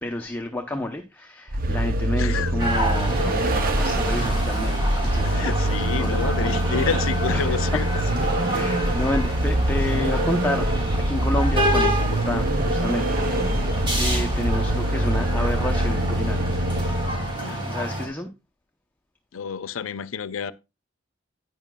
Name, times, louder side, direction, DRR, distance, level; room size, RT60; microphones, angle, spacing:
voice 1, 0.0-6.8 7.3-7.8 8.5-10.7 11.1-13.6 14.0-16.5 17.7-18.3, left 1 dB, 10° left, 0.7 m, -30 dB
Vehicle, 1.5-17.4, right 1 dB, 45° right, 0.7 m, -24 dB
voice 2, 2.2-2.5 3.6-3.7 5.2-7.9 8.2-8.3 17.4-17.6 19.3-20.5, left 6 dB, 90° left, 0.5 m, -29 dB
sound 1, 2.6-18.1, right 1 dB, 25° right, 3.9 m, -29 dB
11.0 x 9.4 x 2.3 m
head